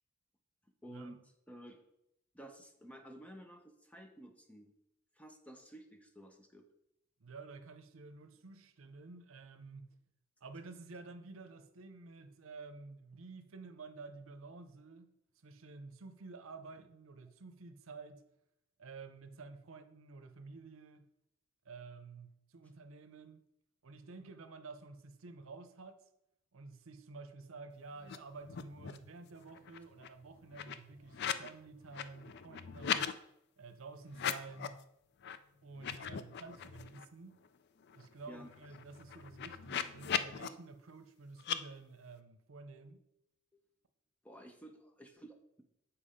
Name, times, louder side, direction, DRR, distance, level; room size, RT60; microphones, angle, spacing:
voice 1, 0.8-1.8 2.3-4.7 5.1-6.6 38.3-38.5 44.2-45.6, right 1 dB, 5° left, 0.7 m, -53 dB
voice 2, 7.2-9.9 10.4-15.1 15.4-18.2 18.8-21.0 21.6-23.4 23.8-26.0 26.5-33.1 33.6-34.8 35.6-37.4 37.9-43.0, right 4 dB, 75° right, 0.7 m, -51 dB
sound 1, 28.0-28.2 28.4-29.1 29.4-31.5 31.8-33.1 34.1-34.8 35.2-35.4 35.7-37.0 37.4-37.5 37.8-40.5 41.4-41.6, left 8 dB, 55° left, 0.4 m, -39 dB
7.3 x 4.6 x 5.0 m
head